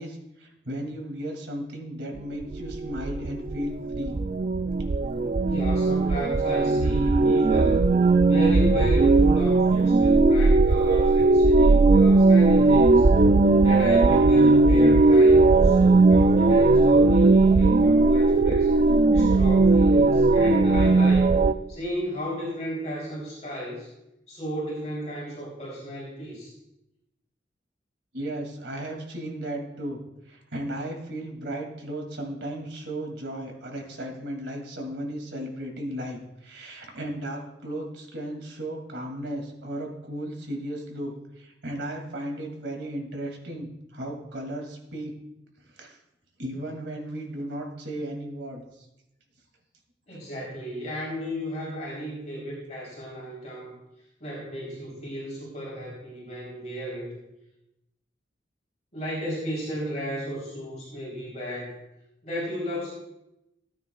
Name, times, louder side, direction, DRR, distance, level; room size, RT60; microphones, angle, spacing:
voice 1, 0.0-4.2 28.1-30.0 30.3-45.1 45.7-46.0 46.4-48.9, right 1 dB, 85° right, 2 dB, 2.4 m, -35 dB
sound 1, 2.2-21.5, right 3 dB, 45° right, 0.4 m, -18 dB
voice 2, 5.5-7.8 8.2-13.0 13.6-18.7 19.1-21.3 21.7-23.9 24.3-26.5 50.1-53.7 54.2-57.1 58.9-61.8 62.2-62.9, equal, 40° left, -5 dB, 3.3 m, -34 dB
17.0 x 9.2 x 2.3 m, 0.88 s
head